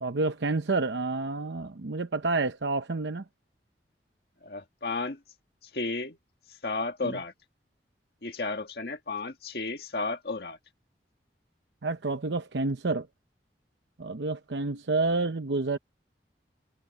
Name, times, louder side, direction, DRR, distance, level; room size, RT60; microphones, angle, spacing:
voice 1, 0.0-3.2 7.0-7.1 11.8-13.1 14.0-15.8, right 3 dB, 85° right, 0.8 m, -29 dB
voice 2, 4.4-5.2 5.6-6.2 6.6-7.3 8.2-10.6, left 3 dB, 60° left, 1.7 m, -33 dB
head